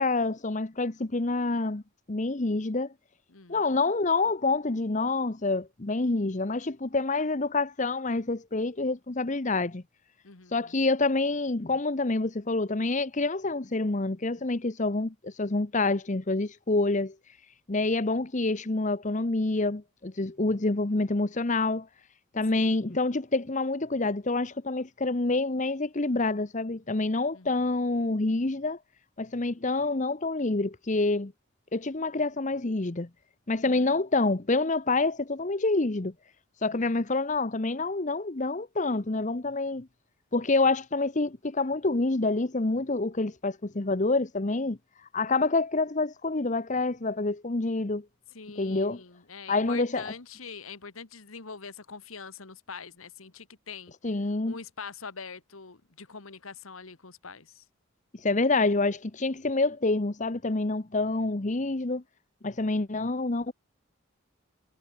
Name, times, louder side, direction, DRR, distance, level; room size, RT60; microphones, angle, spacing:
voice 1, 0.0-1.8 2.1-2.9 3.5-9.8 10.5-17.1 17.7-21.9 22.3-28.8 29.2-31.3 31.7-33.1 33.5-36.1 36.6-39.9 40.3-44.8 45.1-48.0 48.6-49.0 49.5-50.1 54.0-54.5 58.2-62.0 62.4-63.5, left 3 dB, 35° left, 0.9 m, -27 dB
voice 2, 3.3-3.6 10.2-10.8 22.5-23.1 27.3-27.6 33.6-34.0 36.7-37.0 48.3-53.9 54.4-57.6, left 5 dB, 90° left, 1.8 m, -44 dB
head